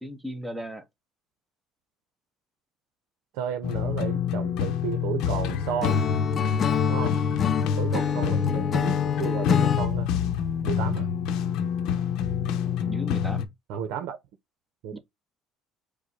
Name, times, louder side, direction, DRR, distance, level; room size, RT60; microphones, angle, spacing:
voice 1, 0.0-0.8 8.1-8.3 12.8-13.5 14.9-15.0, equal, 5° right, 0.9 m, -36 dB
voice 2, 3.3-6.0 6.9-7.1 7.8-10.1 10.6-11.1 13.7-14.2 14.8-15.0, right 9 dB, 80° right, 0.8 m, -33 dB
sound 1, 3.6-13.4, left 7 dB, 75° left, 0.8 m, -27 dB
Acoustic guitar / Strum, 5.8-9.9, left 8 dB, 40° left, 0.4 m, -26 dB
5.0 x 2.2 x 4.2 m
cardioid pair, 120°, 0 cm